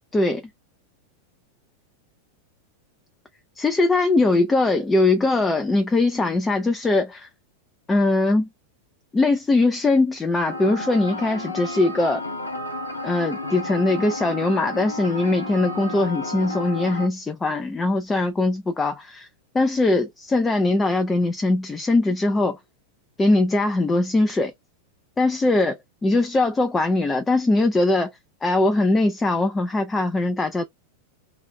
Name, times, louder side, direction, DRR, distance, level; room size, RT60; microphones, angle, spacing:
voice 1, 3.6-7.3 7.9-8.5 9.1-12.2 13.0-19.3 19.5-22.6 23.2-24.5 25.2-28.1 28.4-30.6, left 2 dB, 15° left, 0.5 m, -21 dB
sound 1, 10.5-17.1, left 2 dB, 80° left, 0.7 m, -32 dB
2.5 x 2.1 x 3.8 m
figure-of-eight pair, 90°, 0 cm